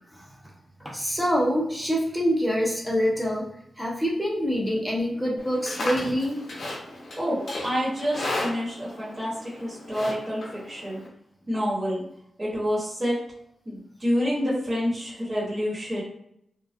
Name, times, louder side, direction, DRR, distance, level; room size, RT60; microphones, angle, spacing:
voice 1, 0.8-3.5 3.8-6.4, equal, ahead, -3 dB, 0.6 m, -25 dB
Livestock farm animals working animals, 5.4-11.1, left 2 dB, 65° left, 0.6 m, -35 dB
voice 2, 7.2-11.0 11.5-12.0 12.4-13.2 13.6-16.0, equal, 30° right, -9 dB, 1.2 m, -28 dB
2.3 x 2.2 x 2.5 m, 0.74 s
wide cardioid pair, 105°, 0 cm